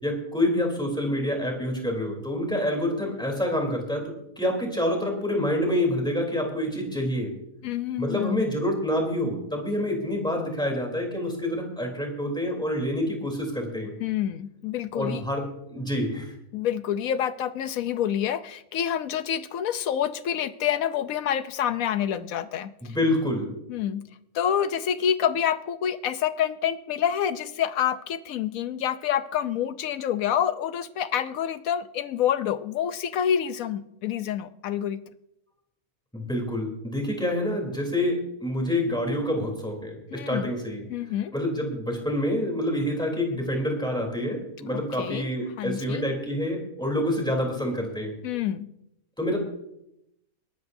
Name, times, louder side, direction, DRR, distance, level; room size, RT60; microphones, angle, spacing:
voice 1, 0.0-4.0 4.4-7.3 8.0-13.9 14.9-15.4 15.7-16.3 22.8-23.5 36.1-40.8 41.3-48.1 49.2-49.4, left 1 dB, 5° left, 1 dB, 3.3 m, -27 dB
voice 2, 7.6-8.5 14.0-15.2 16.5-23.0 23.7-24.0 24.3-35.0 40.1-40.5 40.9-41.3 44.7-45.3 45.6-46.0 48.2-48.7, left 9 dB, 70° left, 12 dB, 1.1 m, -27 dB
21.5 x 12.0 x 2.7 m, 0.82 s
omnidirectional pair, 1.6 m